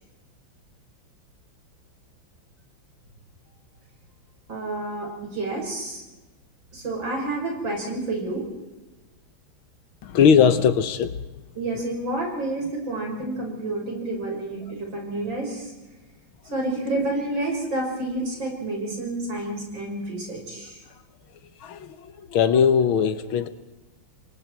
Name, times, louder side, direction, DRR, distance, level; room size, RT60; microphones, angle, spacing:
voice 1, 4.5-6.0 6.7-8.5 11.6-15.7 16.5-20.8, right 2 dB, 65° right, 0 dB, 6.2 m, -29 dB
voice 2, 10.0-11.3 21.6-23.5, left 7 dB, 90° left, 12 dB, 1.9 m, -20 dB
28.0 x 23.0 x 4.6 m, 1.1 s
omnidirectional pair, 2.2 m